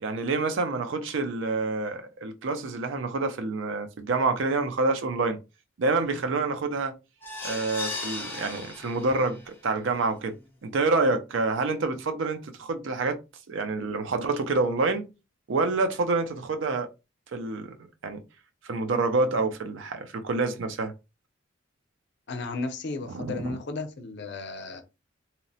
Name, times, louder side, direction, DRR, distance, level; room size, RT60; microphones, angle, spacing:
voice 1, 0.0-5.4 5.8-6.9 7.4-10.4 10.6-13.2 13.5-15.0 15.5-16.9 17.3-17.7 18.0-18.2 18.6-20.9 23.1-23.6, right 3 dB, 65° right, 0.4 m, -27 dB
sound 1, 7.2-9.5 9.9-10.0 10.4-10.5, left 3 dB, 10° left, 0.5 m, -36 dB
voice 2, 22.3-24.8, left 3 dB, 60° left, 0.5 m, -34 dB
2.8 x 2.0 x 2.7 m
head